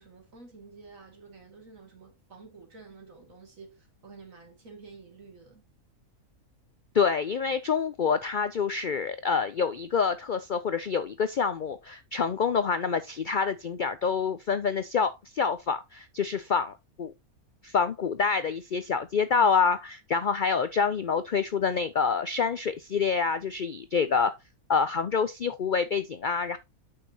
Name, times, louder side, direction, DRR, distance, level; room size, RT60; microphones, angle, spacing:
voice 1, 0.0-5.7, right 4 dB, 60° right, 2.8 m, -50 dB
voice 2, 6.9-17.1 17.6-24.3 24.7-26.6, left 5 dB, 65° left, 0.4 m, -27 dB
8.7 x 6.3 x 2.8 m
omnidirectional pair, 1.6 m